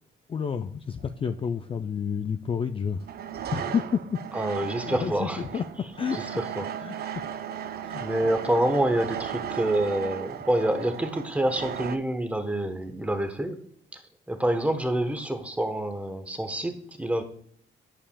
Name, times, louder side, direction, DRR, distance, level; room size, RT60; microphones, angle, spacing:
voice 1, 0.3-3.1 3.5-4.2 4.9-5.6 6.0-6.3 6.8-7.0 7.8-8.0, left 6 dB, 30° left, 8 dB, 0.3 m, -30 dB
sound 1, 1.0-1.2 3.0-12.0, right 9 dB, 55° right, 0.5 m, -36 dB
voice 2, 4.3-5.4 6.1-7.2 8.0-13.6 13.9-14.0 14.3-17.2, right 1 dB, 5° right, 7 dB, 1.0 m, -27 dB
10.0 x 5.3 x 2.2 m, 0.64 s
cardioid pair, 90°, 20 cm